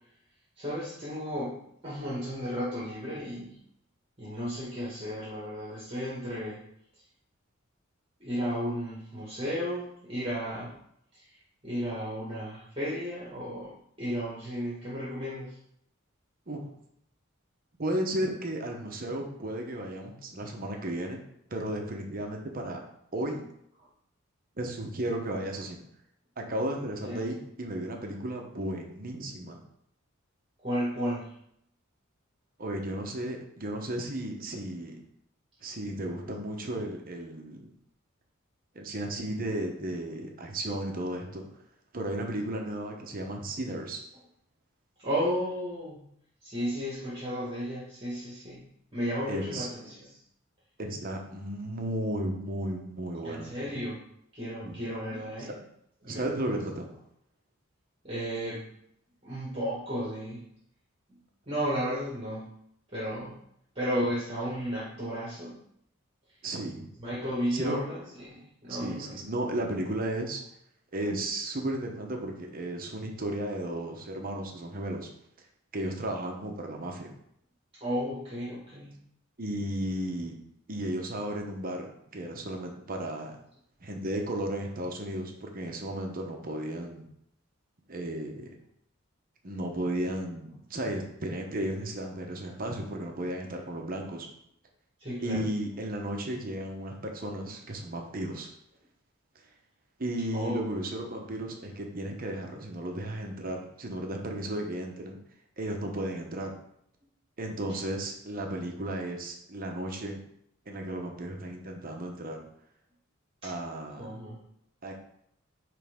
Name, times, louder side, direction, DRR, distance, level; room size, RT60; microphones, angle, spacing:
voice 1, 0.6-1.6 1.8-3.6 4.2-6.6 6.9-7.0 8.2-10.7 11.1-15.6 27.0-27.3 30.6-31.3 45.0-46.0 46.4-48.6 48.9-50.1 53.2-54.0 54.3-55.6 56.0-56.3 58.0-58.7 59.2-60.4 61.1-61.2 61.5-62.5 62.9-63.4 63.8-65.6 67.0-69.3 77.8-78.9 95.0-95.5 100.3-100.6 113.4-113.5 114.0-114.4, equal, 25° right, -7 dB, 1.7 m, -34 dB
voice 2, 17.8-21.2 21.5-22.8 23.1-23.5 24.6-25.8 26.4-29.6 32.6-35.0 35.6-37.7 38.7-41.4 41.9-44.0 49.3-49.7 50.8-53.5 54.6-54.8 56.1-56.9 66.4-66.9 67.5-67.8 68.7-70.4 70.9-75.1 75.7-77.1 79.4-80.3 80.7-83.4 83.8-87.1 87.9-88.5 89.4-94.3 95.2-98.5 100.0-105.2 105.6-106.5 107.4-110.2 110.7-112.4 113.4-114.1 114.8-114.9, right 1 dB, 45° right, 2 dB, 0.9 m, -34 dB
9.1 x 3.4 x 3.6 m, 0.73 s
head